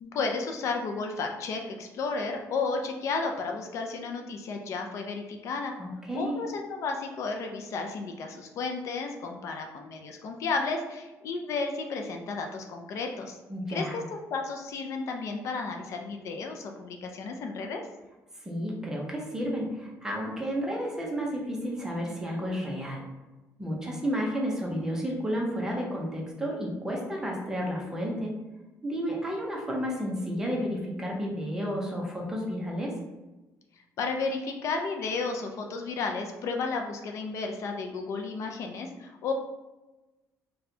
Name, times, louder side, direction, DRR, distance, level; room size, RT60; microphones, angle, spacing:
voice 1, 0.0-5.8 6.1-13.4 13.7-14.0 14.3-17.8 34.0-39.3, left 4 dB, 50° left, 3 dB, 0.3 m, -33 dB
voice 2, 5.8-6.4 13.5-13.9 18.4-23.0 23.6-28.3 28.8-32.9, equal, 10° right, -2 dB, 0.6 m, -31 dB
4.1 x 2.1 x 2.7 m, 1.1 s
cardioid pair, 175°, 6 cm